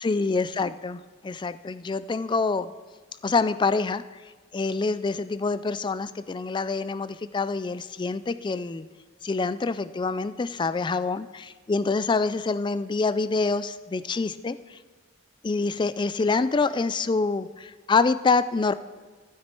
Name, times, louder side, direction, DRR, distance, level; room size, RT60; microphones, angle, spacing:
voice 1, 0.0-2.7 3.2-4.0 4.5-8.9 9.2-14.8 15.4-18.7, left 4 dB, 25° left, 14 dB, 0.3 m, -26 dB
12.5 x 12.0 x 4.5 m, 1.4 s
head